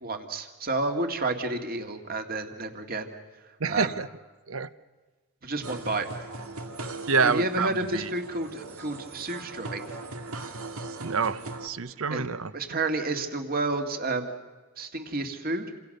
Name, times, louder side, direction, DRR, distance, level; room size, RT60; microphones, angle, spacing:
voice 1, 0.0-3.1 3.7-3.9 5.4-6.1 7.2-9.9 12.1-12.3 12.5-14.3 14.8-15.6, right 2 dB, 45° right, 5 dB, 2.2 m, -30 dB
voice 2, 3.6-4.1 4.5-4.7 7.1-8.1 10.8-12.5, right 5 dB, 70° right, 15 dB, 0.9 m, -27 dB
sound 1, 5.6-11.7, right 2 dB, 90° right, 2.1 m, -39 dB
28.0 x 26.5 x 6.7 m, 1.3 s
head